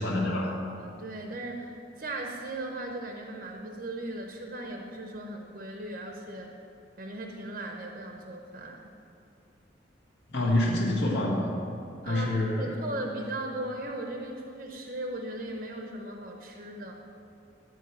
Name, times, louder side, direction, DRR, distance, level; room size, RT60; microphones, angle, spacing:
voice 1, 0.0-0.6 10.3-11.6 12.0-12.7, left 1 dB, 65° left, -3 dB, 1.7 m, -27 dB
voice 2, 0.8-6.5 7.0-8.9 12.0-12.3 12.6-17.0, right 1 dB, 50° right, 2 dB, 0.8 m, -37 dB
12.5 x 4.6 x 8.4 m, 2.5 s
head